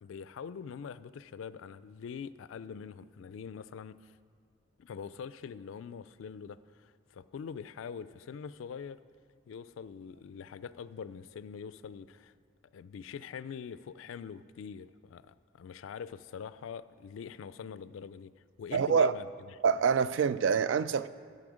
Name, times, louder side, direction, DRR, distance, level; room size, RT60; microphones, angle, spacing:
voice 1, 0.0-4.1 4.8-9.0 9.5-12.3 12.7-18.3 18.6-19.6, left 6 dB, 85° left, 0.3 m, -44 dB
voice 2, 18.7-19.1 19.6-21.1, right 6 dB, 75° right, 0.3 m, -26 dB
12.0 x 6.6 x 5.0 m
head